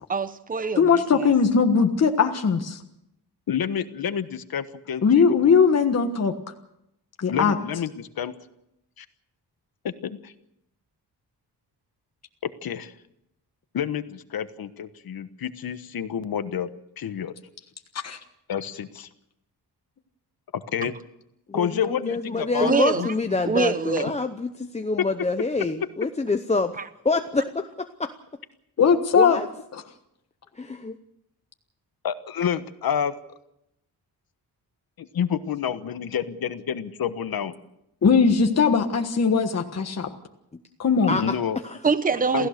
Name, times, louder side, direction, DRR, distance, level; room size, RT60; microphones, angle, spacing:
voice 1, 0.1-1.3 20.8-20.9 22.6-23.1 23.5-24.1 41.8-42.5, right 4 dB, 20° right, 12 dB, 0.9 m, -24 dB
voice 2, 0.8-2.8 5.0-6.3 7.2-7.6 18.0-18.2 28.8-29.4 29.7-29.8 38.0-40.1 40.8-41.2, left 5 dB, 40° left, 5 dB, 1.5 m, -19 dB
voice 3, 3.5-5.6 7.3-8.3 9.0-9.1 12.6-12.9 13.7-17.3 18.5-19.1 20.5-20.9 21.5-22.7 23.0-23.1 32.0-33.1 35.0-37.5 41.1-41.6 42.3-42.5, left 8 dB, 60° left, 11 dB, 1.3 m, -29 dB
voice 4, 21.5-26.8 27.0-28.1 29.1-29.5 30.5-30.9 41.1-41.4 41.6-41.8, left 3 dB, 15° left, 7 dB, 0.7 m, -26 dB
28.0 x 16.0 x 6.7 m, 0.82 s
wide cardioid pair, 170°, 39 cm